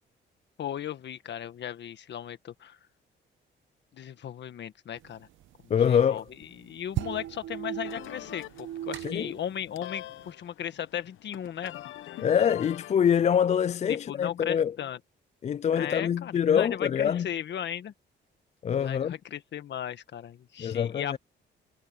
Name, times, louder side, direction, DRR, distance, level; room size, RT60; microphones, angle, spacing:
voice 1, 0.6-2.8 3.9-5.3 5.6-6.2 6.6-11.8 12.1-12.3 13.9-15.0 15.7-17.9 18.7-21.2, left 10 dB, 60° left, 1.7 m, -36 dB
sound 1, 5.0-10.3, right 13 dB, 80° right, 0.8 m, -38 dB
voice 2, 5.7-6.2 9.0-9.3 12.2-14.7 15.4-17.3 18.6-19.1 20.6-21.2, left 8 dB, 35° left, 0.4 m, -25 dB
sound 2, 7.8-12.9, left 14 dB, 80° left, 0.9 m, -44 dB
cardioid pair, 90°, 20 cm